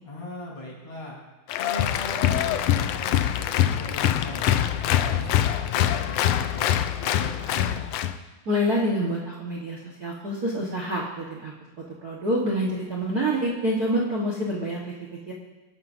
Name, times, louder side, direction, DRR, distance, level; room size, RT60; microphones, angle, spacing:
voice 1, 0.0-1.2 1.6-4.4 4.7-7.8, left 2 dB, 55° left, -5 dB, 6.3 m, -39 dB
Applause, 1.5-8.2, left 11 dB, 80° left, 1.4 m, -24 dB
voice 2, 8.4-11.5 12.0-14.9 15.3-15.4, equal, 45° right, -3 dB, 1.4 m, -27 dB
24.5 x 11.0 x 2.7 m, 1.2 s
omnidirectional pair, 3.4 m